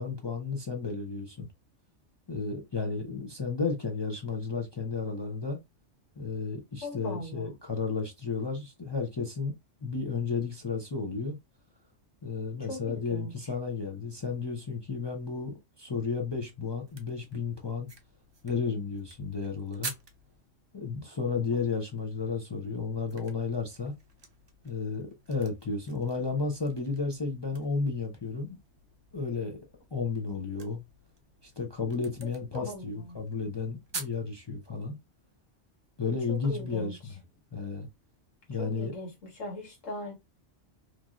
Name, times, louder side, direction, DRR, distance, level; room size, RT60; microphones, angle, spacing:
voice 1, 0.0-1.5 2.3-5.6 6.2-9.5 9.8-11.4 12.2-17.9 18.4-19.9 20.7-23.9 24.6-28.6 29.1-29.6 29.9-30.8 31.4-35.0 36.0-37.0 37.5-37.9 38.5-38.9, left 4 dB, 45° left, 0.3 m, -33 dB
voice 2, 6.8-7.5 12.6-13.3 32.5-33.2 36.0-37.2 38.6-40.1, left 1 dB, 85° left, 1.8 m, -40 dB
sound 1, 16.8-20.4 22.5-34.2, right 4 dB, 45° right, 0.3 m, -48 dB
3.1 x 2.6 x 2.3 m
omnidirectional pair, 1.3 m